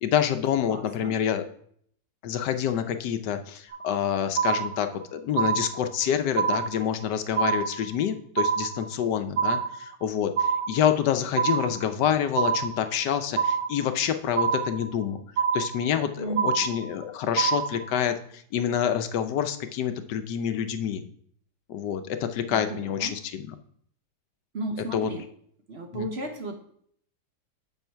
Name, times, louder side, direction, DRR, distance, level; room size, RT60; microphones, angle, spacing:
voice 1, 0.0-1.4 2.2-15.2 15.5-21.0 21.7-23.6 24.9-25.1 25.9-26.1, left 9 dB, 85° left, 9 dB, 1.3 m, -27 dB
voice 2, 0.6-1.2 16.2-16.5 22.5-23.2 24.5-25.2 25.7-26.6, right 1 dB, 45° right, 3 dB, 1.1 m, -34 dB
sound 1, 3.7-4.0 4.4-5.0 5.4-6.0 6.4-7.0 7.4-8.0 8.4-9.0 9.4-10.0 10.4-11.0 11.4-12.0 12.4-13.0 13.4-14.0 14.4-15.0 15.4-16.0 16.4-17.0 17.4-18.0, right 6 dB, 70° right, 1.5 m, -26 dB
8.1 x 6.3 x 4.5 m, 0.64 s
omnidirectional pair, 1.8 m